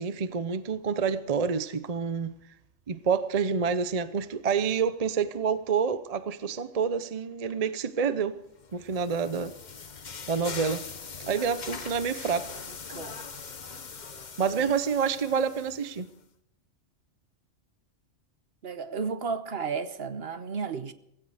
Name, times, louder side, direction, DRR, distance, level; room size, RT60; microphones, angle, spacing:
voice 1, 0.0-2.3 2.9-8.4 8.7-9.5 10.3-10.8 11.2-12.5 14.4-16.1, right 6 dB, 40° right, 0.7 m, -28 dB
sound 1, 8.6-16.1, left 5 dB, 40° left, 1.0 m, -42 dB
voice 2, 12.9-13.3 14.6-14.7 18.6-20.9, right 5 dB, 60° right, 1.1 m, -33 dB
17.0 x 16.5 x 4.9 m
omnidirectional pair, 1.2 m